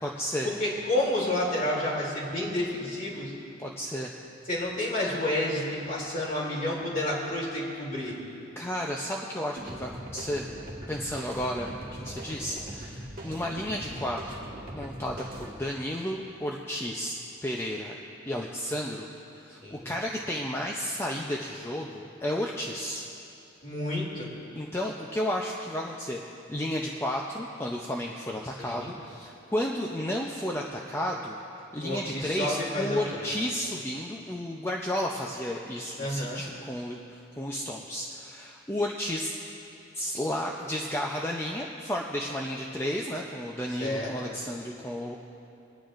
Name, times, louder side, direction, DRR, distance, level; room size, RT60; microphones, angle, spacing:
voice 1, 0.0-0.5 3.6-4.1 8.6-10.5 10.9-14.5 14.7-17.2 17.4-18.0 18.3-19.1 19.3-23.0 24.5-26.2 26.5-31.4 31.7-39.3 39.9-45.2, left 1 dB, 10° left, -1 dB, 0.6 m, -32 dB
voice 2, 0.6-3.3 4.5-8.1 19.6-19.9 23.6-24.3 28.7-28.9 31.8-33.3 36.0-36.4 43.8-44.3, left 1 dB, 40° left, -5 dB, 2.8 m, -30 dB
sound 1, 9.6-15.6, right 1 dB, 45° right, 1.6 m, -41 dB
25.5 x 9.6 x 2.6 m, 2.7 s
head